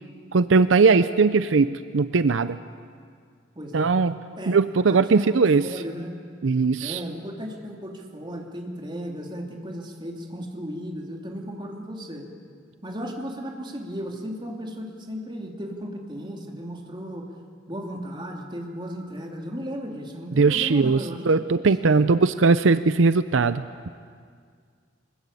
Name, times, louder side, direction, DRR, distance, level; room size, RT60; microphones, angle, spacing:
voice 1, 0.3-2.6 3.7-4.2 4.5-5.7 6.4-7.0 20.4-23.6, right 4 dB, 80° right, 13 dB, 0.6 m, -19 dB
voice 2, 3.5-3.9 4.4-4.6 4.9-6.1 6.8-12.3 12.8-17.3 17.7-21.2 21.8-22.1, equal, 25° right, 1 dB, 2.9 m, -35 dB
23.5 x 21.5 x 8.4 m, 2.1 s
head